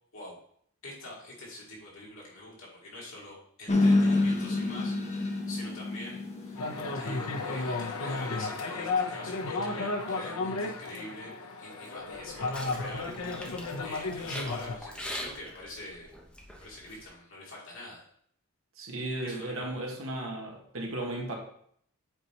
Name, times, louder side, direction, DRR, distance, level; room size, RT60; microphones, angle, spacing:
voice 1, 0.8-11.3 11.6-16.1 16.6-18.0 19.2-19.8, left 1 dB, 60° left, -4 dB, 2.7 m, -45 dB
sound 1, 3.7-8.7, left 2 dB, 30° left, 1.0 m, -28 dB
sound 2, 6.6-14.8, left 3 dB, 85° left, 0.8 m, -33 dB
sound 3, 12.0-17.1, equal, 5° left, 1.0 m, -44 dB
voice 2, 18.8-21.4, right 1 dB, 65° right, 0 dB, 1.6 m, -35 dB
7.8 x 4.1 x 4.5 m, 0.64 s
head